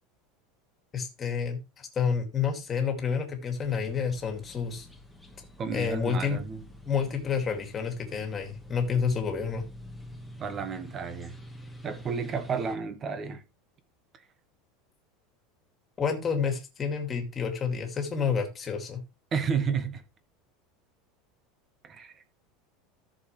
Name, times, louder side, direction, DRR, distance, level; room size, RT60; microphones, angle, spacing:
voice 1, 0.9-4.9 5.7-6.4 6.8-9.6 16.0-19.0, left 6 dB, 20° left, 2.3 m, -29 dB
sound 1, 3.6-12.8, equal, ahead, 1.5 m, -47 dB
voice 2, 5.6-6.7 10.4-11.3 11.8-13.4 19.3-20.0 21.8-22.1, right 6 dB, 20° right, 1.2 m, -31 dB
14.0 x 6.7 x 3.2 m
supercardioid pair, 170°, 0 cm